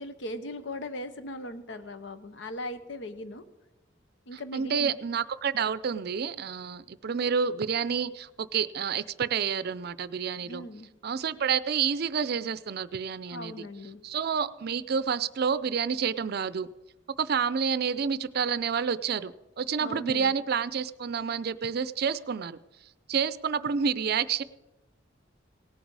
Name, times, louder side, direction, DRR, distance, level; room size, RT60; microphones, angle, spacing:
voice 1, 0.0-3.4 4.3-4.9 10.4-10.9 13.3-14.0 19.8-20.4, left 1 dB, 75° left, 11 dB, 0.9 m, -39 dB
voice 2, 4.5-10.6 11.0-13.7 14.0-16.7 17.2-22.6 23.1-24.4, right 6 dB, 55° right, 16 dB, 0.5 m, -29 dB
18.0 x 8.1 x 4.7 m, 1.0 s
head